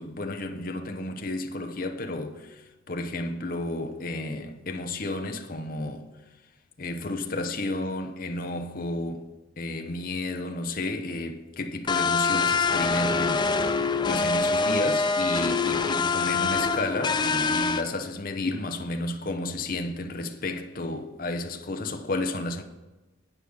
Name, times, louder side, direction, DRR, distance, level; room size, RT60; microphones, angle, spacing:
voice 1, 0.0-6.1 6.8-9.3 9.6-13.5 14.0-22.6, left 2 dB, 45° left, 0.8 m, -32 dB
sound 1, 11.9-17.8, left 4 dB, 25° left, 0.4 m, -25 dB
9.8 x 5.0 x 6.9 m
head